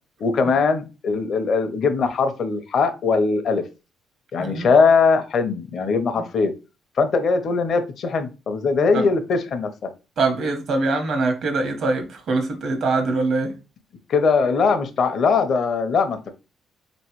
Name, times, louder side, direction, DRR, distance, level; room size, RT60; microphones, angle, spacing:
voice 1, 0.2-3.6 4.3-6.5 7.0-9.9 14.1-16.3, left 4 dB, 60° left, 0.7 m, -20 dB
voice 2, 10.2-13.5, right 3 dB, 65° right, 1.1 m, -23 dB
4.1 x 3.1 x 3.0 m
cardioid pair, 90°, 0 cm